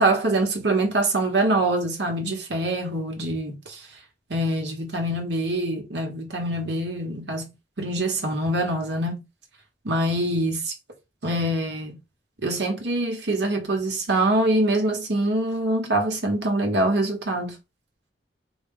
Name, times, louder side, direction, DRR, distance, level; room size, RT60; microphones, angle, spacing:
voice 1, 0.0-3.8 4.3-9.2 9.8-10.7 11.2-12.0 12.4-17.6, right 1 dB, 75° right, 1.2 m, -24 dB
4.1 x 2.3 x 3.7 m
head